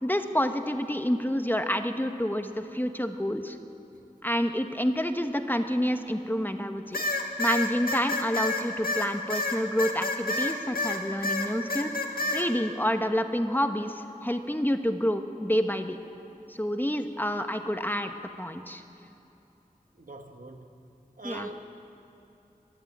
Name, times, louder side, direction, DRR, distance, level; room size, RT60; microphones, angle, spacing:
voice 1, 0.0-3.6 4.2-7.0 7.4-16.0 16.6-18.8 21.2-21.5, equal, 15° left, 6 dB, 1.1 m, -28 dB
sound 1, 6.9-11.0 11.2-12.4, left 2 dB, 90° left, 1.9 m, -28 dB
voice 2, 19.9-20.8 21.2-21.6, right 2 dB, 65° right, 4 dB, 1.5 m, -42 dB
22.5 x 13.5 x 8.7 m, 2.9 s
wide cardioid pair, 50°, 15 cm